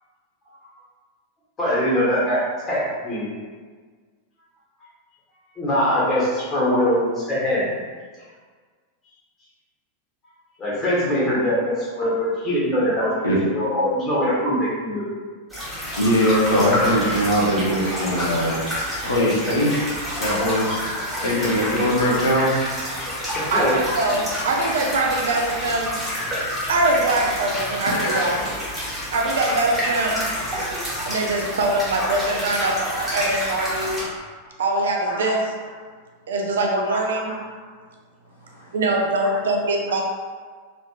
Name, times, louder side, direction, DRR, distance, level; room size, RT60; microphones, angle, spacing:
voice 1, 1.6-2.4 2.7-3.3 5.6-7.7 10.6-15.1 23.3-23.7, equal, 20° left, -7 dB, 1.2 m, -22 dB
sound 1, 15.5-34.0, equal, 5° right, 1.3 m, -28 dB
voice 2, 16.0-18.6 19.0-20.8 21.2-22.5 27.9-28.5 32.8-33.1 35.0-35.3 36.9-37.0 38.5-38.7 39.3-39.4, equal, 70° left, -5 dB, 0.7 m, -22 dB
voice 3, 23.5-26.0 26.7-28.4 29.1-30.2 31.1-34.0 34.6-35.5 36.3-37.4 38.7-40.0, right 2 dB, 65° right, 0 dB, 0.4 m, -23 dB
3.1 x 2.8 x 2.3 m, 1.6 s
figure-of-eight pair, 90°, 0 cm